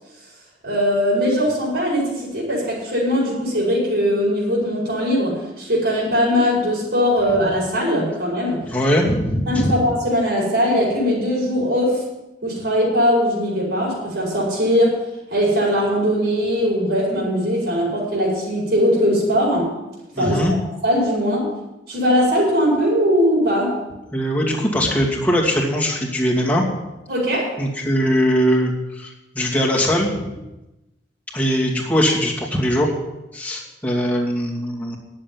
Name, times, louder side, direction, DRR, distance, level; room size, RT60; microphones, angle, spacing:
voice 1, 0.6-8.6 9.5-12.0 12.4-14.9 15.3-19.7 20.2-21.6 21.9-23.7 27.1-27.5, equal, 70° right, -5 dB, 5.0 m, -20 dB
voice 2, 8.7-9.7 20.1-20.5 24.1-26.6 27.6-30.3 31.3-32.9 33.3-35.0, equal, 10° left, -3 dB, 2.6 m, -21 dB
11.0 x 7.8 x 9.1 m, 0.97 s
head